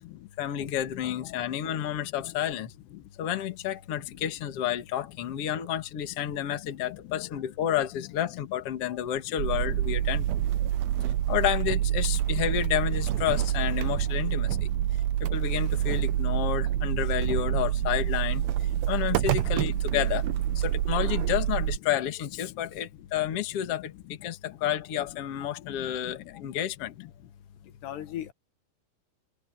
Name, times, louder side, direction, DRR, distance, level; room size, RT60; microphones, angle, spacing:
voice 1, 0.4-2.7 3.2-10.2 11.3-14.5 15.2-20.2 20.6-23.9 24.2-26.9, left 11 dB, 45° left, 2.2 m, -30 dB
voice 2, 0.9-1.3 2.9-3.0 4.2-4.3 5.4-5.5 6.5-6.6 6.9-7.3 7.9-8.5 8.8-8.9 9.7-9.8 12.1-12.2 14.0-14.3 16.6-17.9 18.4-18.8 19.3-20.6 21.6-22.0 22.4-22.5 23.6-23.8 24.5-24.6 25.6-26.2 27.0-27.1 27.8-28.3, left 14 dB, 85° left, 3.8 m, -43 dB
sound 1, 9.4-21.8, right 12 dB, 75° right, 2.5 m, -27 dB
open air
omnidirectional pair, 4.7 m